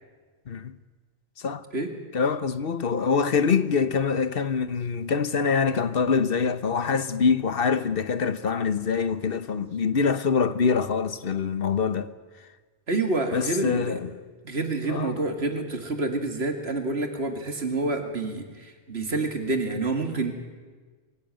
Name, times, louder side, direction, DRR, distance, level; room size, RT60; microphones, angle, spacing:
voice 1, 0.5-0.8 1.4-1.6 2.1-12.1 13.3-14.1 14.9-15.1, left 5 dB, 65° left, 1.2 m, -25 dB
voice 2, 12.9-14.0 14.4-20.3, right 2 dB, 85° right, 2.6 m, -28 dB
23.0 x 17.0 x 9.1 m
omnidirectional pair, 1.0 m